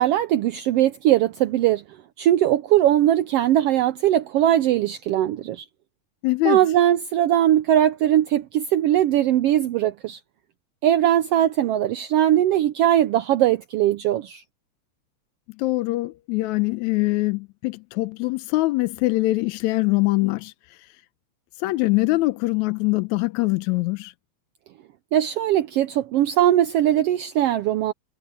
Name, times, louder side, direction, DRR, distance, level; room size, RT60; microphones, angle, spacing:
voice 1, 0.0-1.8 2.2-5.7 6.4-10.2 10.8-14.4 25.1-27.9, right 12 dB, 75° right, 1.4 m, -20 dB
voice 2, 6.2-6.6 15.6-20.5 21.6-24.1, left 20 dB, 85° left, 2.0 m, -23 dB
omnidirectional pair, 3.3 m